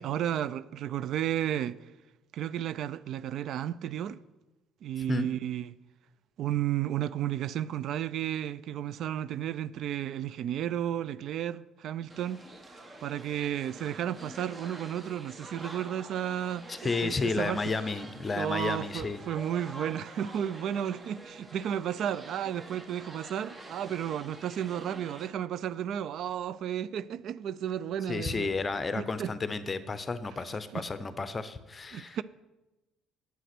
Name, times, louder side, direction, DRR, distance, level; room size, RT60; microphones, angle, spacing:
voice 1, 0.0-1.8 2.3-4.2 4.8-5.7 6.4-12.4 12.7-17.6 18.3-28.5 28.9-29.3 30.7-30.8 31.9-32.2, right 10 dB, 65° right, 0.3 m, -33 dB
sound 1, 12.1-25.3, right 1 dB, 25° right, 1.2 m, -47 dB
voice 2, 16.7-19.2 28.1-32.2, left 3 dB, 25° left, 0.7 m, -32 dB
8.1 x 8.0 x 6.0 m
cardioid pair, 95°, 0 cm